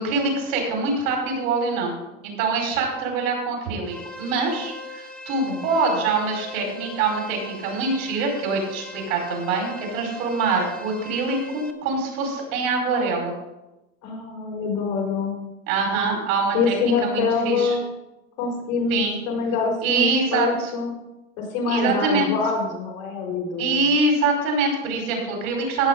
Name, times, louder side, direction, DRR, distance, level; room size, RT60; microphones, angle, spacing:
voice 1, 0.0-1.9 2.2-13.3 15.7-17.8 18.9-19.2 19.8-20.7 21.7-22.3 23.6-25.9, right 3 dB, 80° right, 1 dB, 4.9 m, -24 dB
sound 1, 3.8-11.7, left 2 dB, ahead, 1.0 m, -40 dB
voice 2, 14.0-15.3 16.5-17.9 18.4-20.9 21.4-23.8, left 4 dB, 75° left, -2 dB, 4.9 m, -25 dB
17.0 x 7.2 x 3.8 m, 0.98 s
hypercardioid pair, 100°, 40 cm